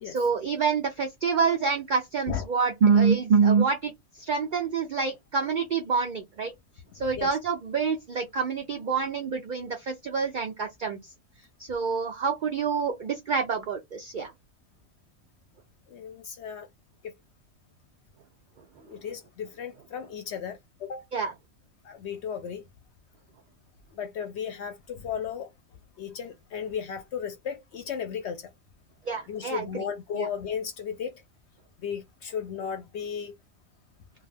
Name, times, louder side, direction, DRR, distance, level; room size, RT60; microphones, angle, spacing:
voice 1, 0.0-3.9 4.2-6.5 6.9-11.0 11.6-14.3 21.1-21.3 29.1-29.8 30.2-30.3, right 5 dB, 70° right, 0.4 m, -26 dB
voice 2, 7.0-7.3 15.9-16.7 17.0-17.1 18.8-21.0 21.8-22.6 23.9-25.5 26.0-28.5 29.3-31.2 31.8-33.3, left 7 dB, 65° left, 0.7 m, -35 dB
2.4 x 2.3 x 3.2 m
omnidirectional pair, 1.4 m